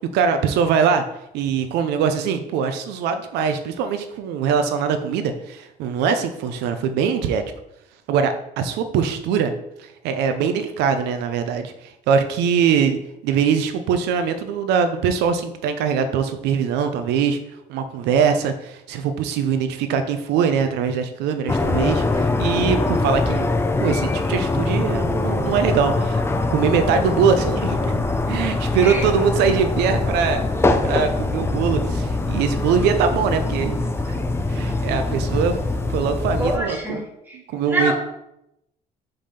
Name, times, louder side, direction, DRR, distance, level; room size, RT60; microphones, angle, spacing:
voice 1, 0.1-1.0 1.3-7.4 8.1-9.5 9.8-13.0 13.2-17.4 17.7-23.5 23.8-26.2 26.5-28.0 28.3-30.4 30.8-33.8 34.1-35.6 35.9-37.0 37.5-37.9, right 6 dB, 85° right, 8 dB, 0.6 m, -22 dB
sound 1, 21.5-36.6, left 2 dB, 15° left, 0.5 m, -23 dB
voice 2, 36.4-37.0 37.3-37.4 37.7-37.9, right 1 dB, 10° right, -1 dB, 2.1 m, -24 dB
5.2 x 3.6 x 5.6 m, 0.83 s
cardioid pair, 110°, 17 cm